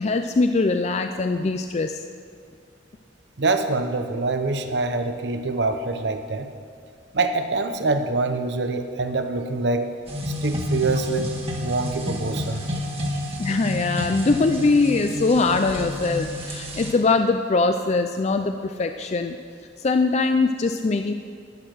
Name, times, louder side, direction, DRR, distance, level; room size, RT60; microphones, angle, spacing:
voice 1, 0.0-2.0 13.4-19.4 19.8-21.1, left 3 dB, 35° left, 6 dB, 0.4 m, -22 dB
voice 2, 3.4-6.5 7.1-9.9 10.3-12.8 13.1-13.2, right 3 dB, 65° right, 7 dB, 0.8 m, -25 dB
sound 1, 10.1-16.9, left 1 dB, 30° right, 1.6 m, -30 dB
10.5 x 10.0 x 6.2 m, 2.3 s
head